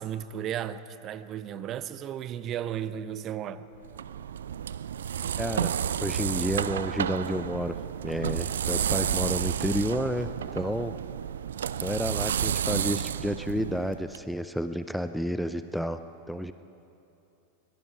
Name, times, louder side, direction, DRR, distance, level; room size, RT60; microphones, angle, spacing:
voice 1, 0.0-3.6, right 10 dB, 30° right, 0.9 m, -34 dB
sound 1, 3.8-14.2, right 9 dB, 65° right, 0.5 m, -31 dB
voice 2, 5.4-5.7 6.0-7.7 8.0-10.9 11.8-16.0 16.3-16.5, equal, ahead, 0.7 m, -30 dB
25.5 x 22.0 x 4.7 m
figure-of-eight pair, 90°, 0 cm